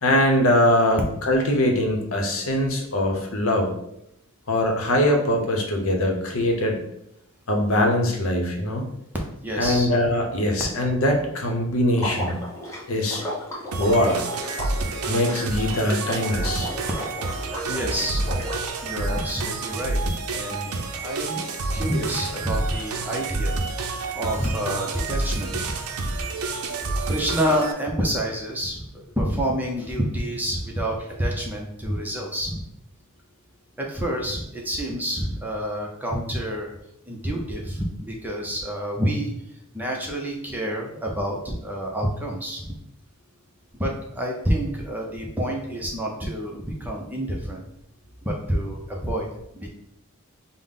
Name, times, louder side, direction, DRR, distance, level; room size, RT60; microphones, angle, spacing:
voice 1, 0.0-3.7 4.5-6.8 7.5-8.9 9.6-12.4 12.9-13.2 13.8-14.2 15.1-16.7 26.2-26.3 26.8-26.9, left 1 dB, 65° left, 2 dB, 0.8 m, -22 dB
voice 2, 9.4-9.9 17.4-18.3 18.8-21.5 21.7-23.5 24.1-25.8 27.1-28.9 29.2-32.6 33.8-36.7 37.1-39.3 39.7-42.8 43.7-47.6 48.2-49.3 49.5-49.7, equal, 10° right, -1 dB, 0.5 m, -28 dB
Water / Liquid, 11.9-18.7, left 1 dB, 15° left, 1.0 m, -34 dB
sound 1, 13.7-27.7, right 3 dB, 85° right, 0.5 m, -29 dB
5.4 x 2.1 x 3.6 m, 0.78 s
head